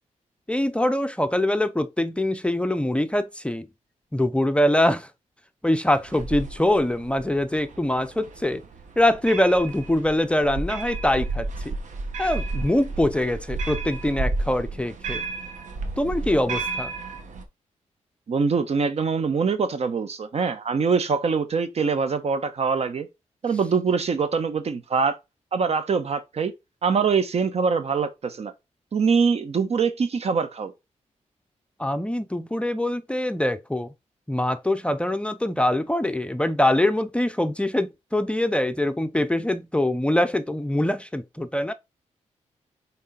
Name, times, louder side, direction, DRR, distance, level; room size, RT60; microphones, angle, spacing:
voice 1, 0.5-3.7 4.1-5.1 5.6-8.6 9.0-11.7 12.2-15.2 16.0-16.9 31.8-33.9 34.3-41.7, left 1 dB, 10° left, 0.6 m, -23 dB
sound 1, 5.9-17.4, right 3 dB, 75° right, 1.4 m, -32 dB
voice 2, 18.3-23.1 23.4-25.2 25.5-26.5 26.8-28.5 28.9-30.7, right 5 dB, 55° right, 1.1 m, -23 dB
5.8 x 4.1 x 4.1 m
cardioid pair, 80°, 13 cm